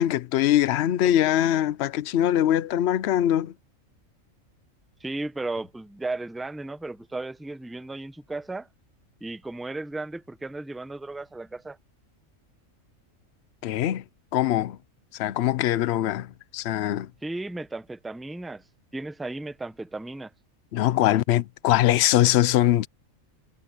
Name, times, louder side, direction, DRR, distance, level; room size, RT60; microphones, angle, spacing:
voice 1, 0.0-3.5 13.6-14.0 14.3-14.8 15.2-16.3 16.5-17.1 20.7-22.9, left 12 dB, 65° left, 0.8 m, -22 dB
voice 2, 5.0-8.7 9.2-11.8 17.2-18.6 18.9-20.3, right 2 dB, ahead, 0.6 m, -35 dB
omnidirectional pair, 1.4 m